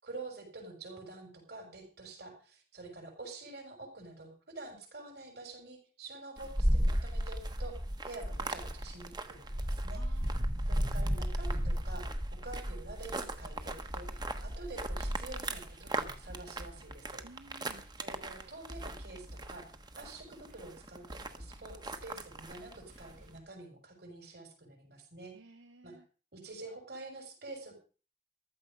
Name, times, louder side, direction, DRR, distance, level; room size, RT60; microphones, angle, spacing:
voice 1, 0.0-7.8 8.0-10.2 10.7-17.2 18.0-19.6 19.9-25.5 25.8-25.9 26.3-27.8, right 3 dB, 55° right, 3 dB, 6.5 m, -48 dB
sound 1, 6.4-23.3, right 1 dB, 20° right, 1.2 m, -35 dB
voice 2, 9.9-10.6 17.2-17.8 25.3-26.0, right 2 dB, 85° right, 7 dB, 1.3 m, -56 dB
sound 2, 13.9-23.4, equal, 35° right, 1.6 m, -51 dB
15.0 x 12.5 x 5.4 m, 0.38 s
head